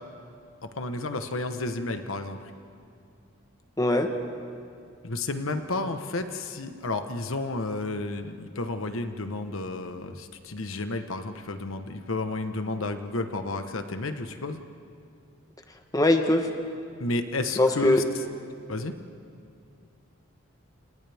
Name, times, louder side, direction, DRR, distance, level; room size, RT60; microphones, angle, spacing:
voice 1, 0.8-2.4 5.0-14.6 17.0-18.2 18.7-18.9, left 2 dB, 80° left, 7 dB, 1.2 m, -31 dB
voice 2, 3.8-4.1 15.9-16.5 17.6-18.0, left 1 dB, 20° left, 5 dB, 1.2 m, -21 dB
29.5 x 28.5 x 3.6 m, 2.4 s
head